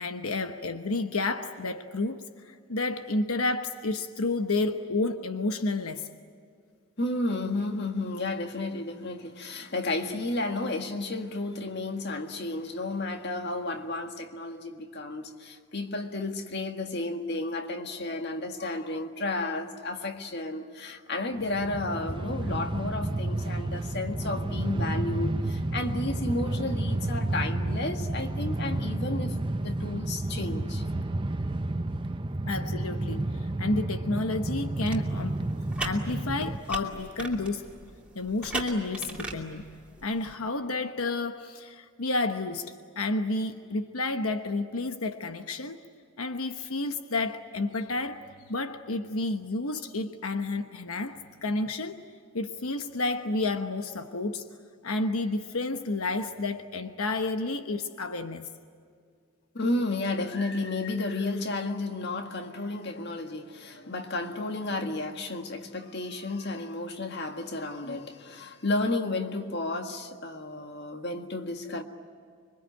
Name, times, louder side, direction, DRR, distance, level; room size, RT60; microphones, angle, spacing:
voice 1, 0.0-6.1 32.4-35.4 35.8-37.7 38.1-39.7 40.0-45.8 46.2-48.2 48.5-52.0 52.3-54.5 54.8-58.5, left 2 dB, 85° left, 1.1 m, -30 dB
voice 2, 7.0-30.8 59.5-71.8, left 2 dB, 50° left, 1.8 m, -32 dB
Train, 21.4-36.6, right 2 dB, 25° right, 0.6 m, -31 dB
sound 1, 34.7-40.3, right 2 dB, 5° right, 2.7 m, -39 dB
26.0 x 24.0 x 9.1 m
head